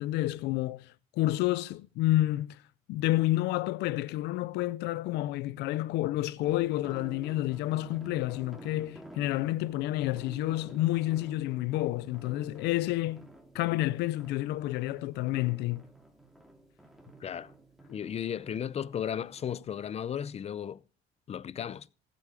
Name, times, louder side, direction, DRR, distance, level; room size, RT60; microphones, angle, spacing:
voice 1, 0.0-2.6 2.9-13.3 13.5-15.8, left 16 dB, 85° left, 0.5 m, -29 dB
sound 1, 6.4-20.0, right 1 dB, ahead, 2.4 m, -50 dB
voice 2, 17.2-17.5 17.9-20.8 21.3-21.9, left 9 dB, 40° left, 0.5 m, -35 dB
14.5 x 8.4 x 4.8 m
cardioid pair, 110°, 17 cm